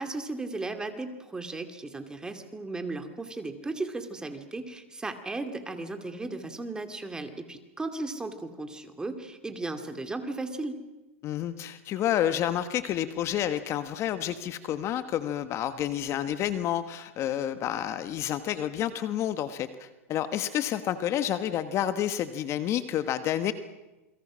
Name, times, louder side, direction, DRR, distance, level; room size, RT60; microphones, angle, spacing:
voice 1, 0.0-10.8, right 2 dB, 10° right, 7 dB, 2.5 m, -36 dB
voice 2, 11.2-23.5, left 11 dB, 35° left, 11 dB, 1.3 m, -29 dB
28.5 x 22.5 x 6.3 m, 1.1 s
supercardioid pair, 130°, 8 cm